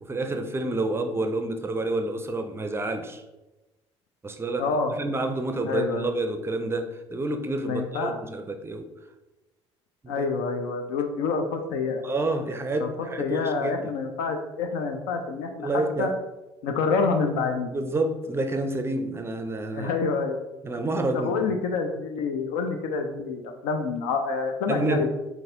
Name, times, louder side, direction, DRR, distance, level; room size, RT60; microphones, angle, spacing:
voice 1, 0.0-3.2 4.2-8.9 10.0-10.3 12.0-13.9 15.6-16.1 17.7-19.9 20.6-21.5 24.7-25.1, right 2 dB, 15° right, 7 dB, 0.5 m, -29 dB
voice 2, 4.6-4.9 5.7-6.1 7.7-8.2 10.1-12.0 12.8-12.9 13.2-15.7 16.0-16.1 16.6-17.7 19.7-20.4 21.1-25.1, left 4 dB, 60° left, 5 dB, 0.5 m, -27 dB
4.4 x 3.9 x 2.6 m, 1.0 s
figure-of-eight pair, 55°, 15 cm